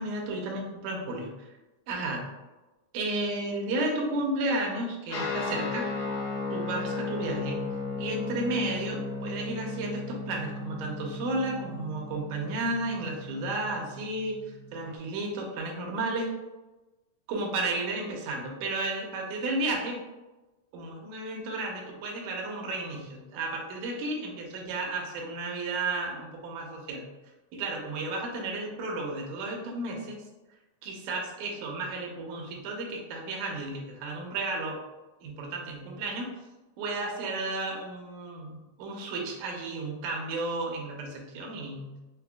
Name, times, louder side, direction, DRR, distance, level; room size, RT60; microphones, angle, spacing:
voice 1, 0.0-1.5 1.9-2.2 2.9-5.9 6.5-7.7 8.0-14.4 14.7-16.3 17.3-20.0 20.7-27.0 27.5-30.2 30.8-34.8 35.2-36.3 36.8-41.9, right 2 dB, 80° right, 0 dB, 2.1 m, -33 dB
Guitar, 5.1-14.9, left 3 dB, 70° left, 2.4 m, -36 dB
5.5 x 2.2 x 2.2 m, 1.1 s
omnidirectional pair, 3.8 m